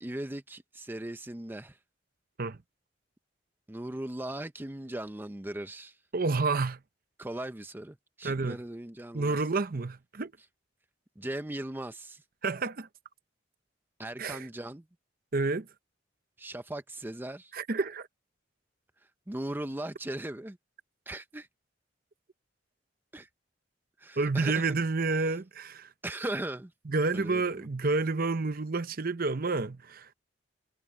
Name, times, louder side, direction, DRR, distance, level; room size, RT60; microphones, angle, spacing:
voice 1, 0.0-1.8 3.7-6.0 7.2-9.4 11.2-12.2 14.0-14.9 16.4-17.5 19.0-20.6 21.1-21.5 23.1-23.3 24.0-24.7 26.0-26.7 27.1-27.7, right 1 dB, 10° right, 0.5 m, -38 dB
voice 2, 6.1-6.8 8.2-8.6 9.1-10.3 12.4-12.9 14.2-14.4 15.3-15.7 17.5-18.1 24.2-25.9 26.9-30.1, right 3 dB, 50° right, 0.8 m, -29 dB
head